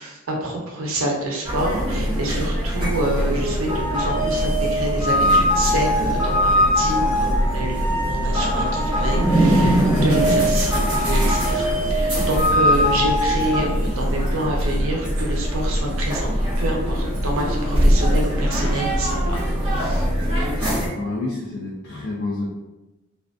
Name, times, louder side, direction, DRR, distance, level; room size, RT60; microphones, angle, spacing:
voice 1, 0.0-19.4 19.7-20.0, right 1 dB, 65° right, 0 dB, 0.6 m, -27 dB
sound 1, 1.4-20.9, equal, 25° right, 0.7 m, -22 dB
sound 2, 3.7-13.6, equal, 70° left, 1.0 m, -22 dB
voice 2, 20.9-22.4, left 2 dB, 55° left, -6 dB, 0.4 m, -28 dB
2.3 x 2.3 x 2.3 m, 1.0 s
head